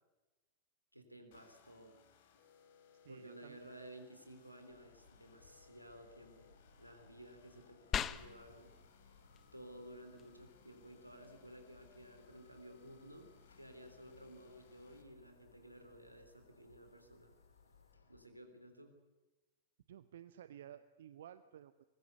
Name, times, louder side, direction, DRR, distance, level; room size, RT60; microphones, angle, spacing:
voice 1, 0.9-2.0 3.1-8.8 9.5-13.3 13.6-17.3 18.1-19.0, right 1 dB, 90° right, 6 dB, 3.6 m, -55 dB
sound 1, 1.3-15.0, left 7 dB, 55° left, 3.7 m, -67 dB
voice 2, 3.0-3.6 19.9-21.9, right 10 dB, 60° right, 13 dB, 0.8 m, -54 dB
sound 2, 4.7-18.3, left 4 dB, 75° left, 2.9 m, -66 dB
sound 3, 7.9-17.9, left 9 dB, 25° left, 0.9 m, -49 dB
23.5 x 21.0 x 8.1 m, 1.1 s
figure-of-eight pair, 90°, 0 cm